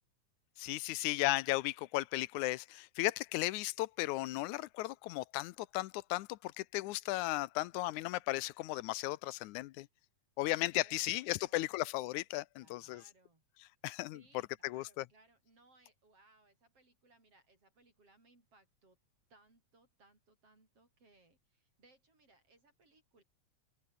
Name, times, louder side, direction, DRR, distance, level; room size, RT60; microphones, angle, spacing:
voice 1, 0.6-9.9 10.4-13.0 13.8-14.2 14.6-15.1, left 18 dB, 90° left, 2.1 m, -35 dB
voice 2, 10.8-11.7 12.6-13.4 14.1-19.0 19.3-23.2, right 2 dB, 50° right, 8.9 m, -67 dB
open air
omnidirectional pair, 3.3 m